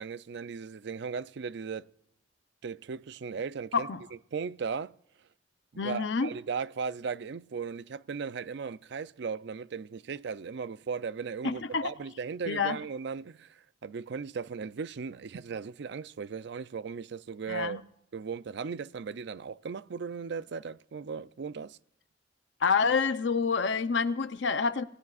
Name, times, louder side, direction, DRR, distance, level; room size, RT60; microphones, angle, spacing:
voice 1, 0.0-1.9 2.6-3.9 4.3-4.9 5.7-17.8 18.1-21.8, right 5 dB, 65° right, 0.4 m, -37 dB
voice 2, 5.8-6.3 11.4-11.9 12.5-12.8 17.5-17.8 22.6-24.8, left 5 dB, 65° left, 0.7 m, -27 dB
28.0 x 16.5 x 2.4 m
head